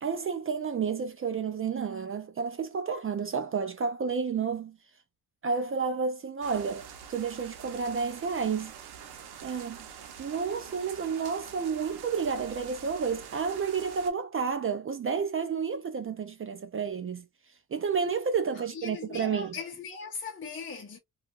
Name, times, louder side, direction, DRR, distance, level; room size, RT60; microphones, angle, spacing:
voice 1, 0.0-4.8 5.4-8.7 9.4-9.8 10.2-17.3 17.7-19.5, right 5 dB, 35° right, 0.4 m, -31 dB
sound 1, 6.4-14.1, right 8 dB, 80° right, 0.7 m, -46 dB
voice 2, 18.5-21.0, left 5 dB, 30° left, 0.7 m, -39 dB
2.7 x 2.4 x 2.4 m
cardioid pair, 95°, 38 cm